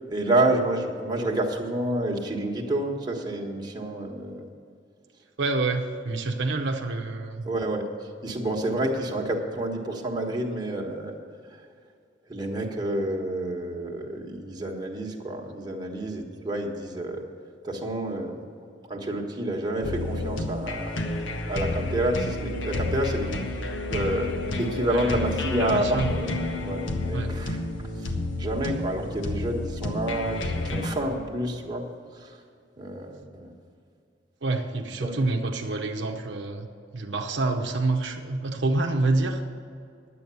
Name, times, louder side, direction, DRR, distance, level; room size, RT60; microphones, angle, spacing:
voice 1, 0.1-4.4 7.4-7.9 8.2-11.2 12.3-17.2 17.6-18.4 18.9-21.1 21.5-23.4 23.9-26.3 26.6-27.6 28.0-28.1 28.4-31.8 32.2-32.3 32.8-33.5 35.0-35.1, right 1 dB, 25° right, 0 dB, 1.3 m, -29 dB
voice 2, 5.4-7.5 24.9-25.3 25.6-26.1 27.1-27.3 34.4-36.7 36.9-39.4, right 2 dB, 70° right, 3 dB, 0.8 m, -27 dB
sound 1, 19.8-30.9, left 2 dB, 90° left, 1.2 m, -30 dB
10.5 x 8.6 x 6.9 m, 2.4 s
head